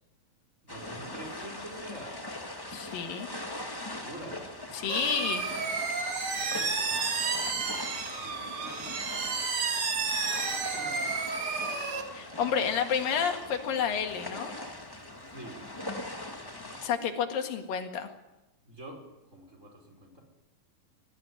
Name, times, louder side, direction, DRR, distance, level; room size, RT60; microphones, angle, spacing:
voice 1, 0.6-2.2 3.9-4.4 6.2-6.7 8.2-8.9 10.4-11.1 15.3-15.6 18.7-19.0 19.3-20.2, right 1 dB, 20° right, 1 dB, 5.4 m, -46 dB
sound 1, 0.7-16.9, left 1 dB, 20° left, 0.5 m, -41 dB
voice 2, 2.7-3.3 4.7-5.4 12.1-14.5 16.6-18.1, left 7 dB, 70° left, 5 dB, 3.5 m, -30 dB
sound 2, 4.9-12.0, right 4 dB, 40° right, 2.5 m, -31 dB
21.5 x 14.0 x 9.9 m, 1.0 s
omnidirectional pair, 4.1 m